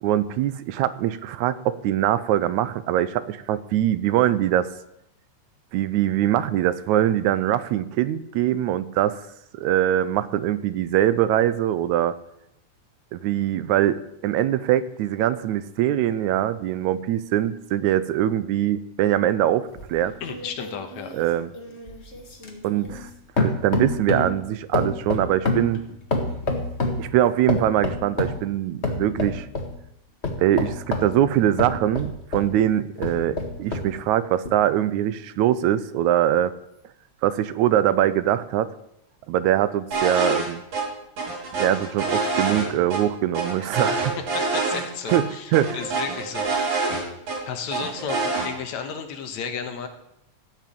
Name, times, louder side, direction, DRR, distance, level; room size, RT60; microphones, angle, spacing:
voice 1, 0.0-4.7 5.7-9.2 9.6-12.1 13.1-14.0 14.2-20.1 21.1-21.5 22.6-23.1 23.4-25.8 27.0-29.5 30.4-36.5 37.2-38.7 39.3-40.6 41.6-44.2 45.1-45.8, right 12 dB, 80° right, 15 dB, 2.0 m, -22 dB
sound 1, 19.8-23.1 23.4-24.4 24.7-27.1 27.5-28.4 28.8-29.7 30.2-32.5 33.0-33.9 34.5-34.6, left 2 dB, 30° left, 1.4 m, -27 dB
voice 2, 20.2-21.1 44.3-46.9 47.5-49.9, left 6 dB, 70° left, 7 dB, 2.5 m, -33 dB
sound 2, 39.9-40.5 40.7-40.8 41.2-43.0 43.3-44.8 45.1-45.2 45.5-47.4 47.7-48.5, right 3 dB, 60° right, 4.6 m, -25 dB
15.0 x 6.1 x 8.6 m, 0.80 s
omnidirectional pair, 3.4 m